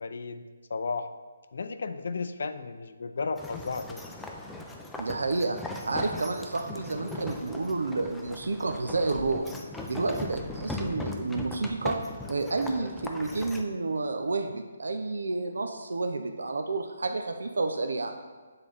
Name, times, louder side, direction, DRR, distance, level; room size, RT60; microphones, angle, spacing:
voice 1, 0.0-1.1 1.5-4.1, left 4 dB, 65° left, 10 dB, 0.4 m, -34 dB
sound 1, 3.4-13.6, left 2 dB, 5° left, 0.4 m, -39 dB
voice 2, 5.0-5.6 5.9-9.5 9.9-12.0 12.3-18.1, right 3 dB, 85° right, 5 dB, 0.5 m, -30 dB
7.2 x 3.9 x 3.4 m, 1.4 s
hypercardioid pair, 160°, 0 cm